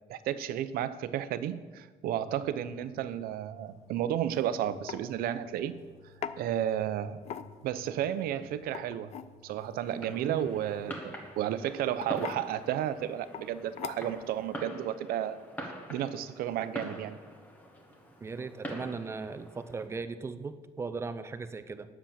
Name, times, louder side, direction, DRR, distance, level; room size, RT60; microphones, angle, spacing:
voice 1, 0.1-5.7 6.4-7.2 7.6-9.1 9.4-15.4 15.9-17.2, right 10 dB, 80° right, 13 dB, 0.6 m, -32 dB
sound 1, 2.2-10.8, left 2 dB, 70° left, 1.5 m, -59 dB
sound 2, 4.2-4.4 4.9-5.0 6.2-6.4 7.2-7.7 8.6-9.3 11.0-11.2 12.0-12.4 13.3-13.5 13.8-14.2, left 9 dB, 45° left, 0.5 m, -39 dB
Fireworks, 9.8-19.9, equal, 10° left, 1.3 m, -45 dB
voice 2, 18.2-21.9, right 4 dB, 15° right, 10 dB, 0.5 m, -38 dB
10.0 x 7.2 x 7.3 m, 1.4 s
cardioid pair, 175°, 15 cm